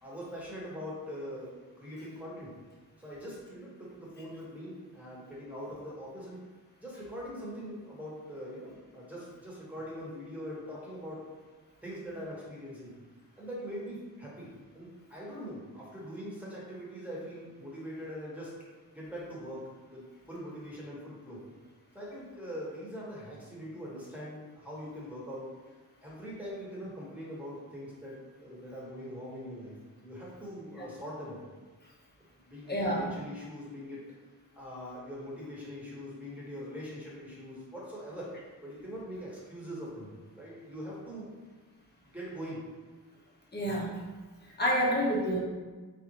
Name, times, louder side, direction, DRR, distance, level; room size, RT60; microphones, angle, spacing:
voice 1, 0.0-2.5 3.0-6.4 6.8-11.2 11.8-12.9 13.4-18.5 18.9-21.4 21.9-25.5 26.0-29.8 30.0-31.4 32.3-34.0 34.5-38.3 38.6-41.3 42.0-42.6, equal, 5° right, -6 dB, 1.4 m, -42 dB
voice 2, 32.7-33.0 43.5-43.9 44.6-45.4, equal, 25° left, -4 dB, 1.0 m, -28 dB
4.3 x 3.7 x 2.9 m, 1.3 s
wide cardioid pair, 120°, 36 cm